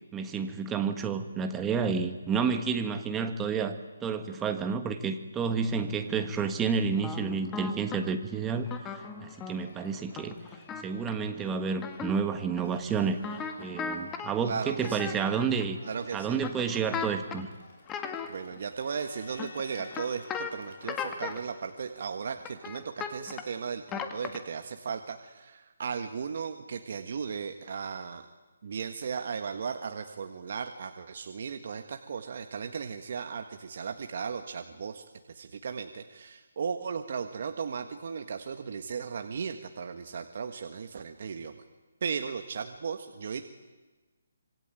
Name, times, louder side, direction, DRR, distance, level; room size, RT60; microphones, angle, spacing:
voice 1, 0.1-3.8 4.0-10.3 10.8-13.2 13.6-15.8 16.1-17.5, right 5 dB, 10° right, 7 dB, 1.5 m, -30 dB
Crowd, 5.4-22.5, left 3 dB, 40° left, 7.3 m, -55 dB
sound 1, 7.0-8.0 8.6-9.6 10.1-11.1 11.8-12.2 12.5-12.6 13.2-14.3 14.8-15.6 16.4-17.4 17.9-18.6 19.4-20.5 20.8-21.4 22.4-23.5 23.9-24.6, left 6 dB, 10° left, 1.7 m, -37 dB
voice 2, 14.4-15.2 15.8-16.4 18.3-28.2 28.6-41.6 42.0-43.4, right 6 dB, 45° right, 7 dB, 1.7 m, -36 dB
26.0 x 25.0 x 9.2 m, 1.2 s
hypercardioid pair, 170°, 0 cm